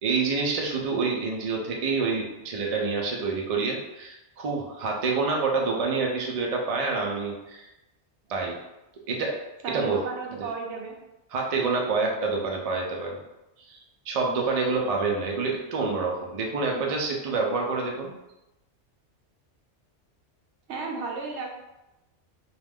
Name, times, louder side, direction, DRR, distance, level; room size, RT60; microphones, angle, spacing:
voice 1, 0.0-7.7 8.3-8.5 9.1-9.4 9.7-10.0 11.3-13.2 13.7-18.1, right 4 dB, 55° right, 0 dB, 0.4 m, -27 dB
voice 2, 9.6-11.0 20.7-21.5, right 4 dB, 75° right, 0 dB, 0.9 m, -33 dB
2.4 x 2.2 x 3.4 m, 0.95 s
omnidirectional pair, 1.2 m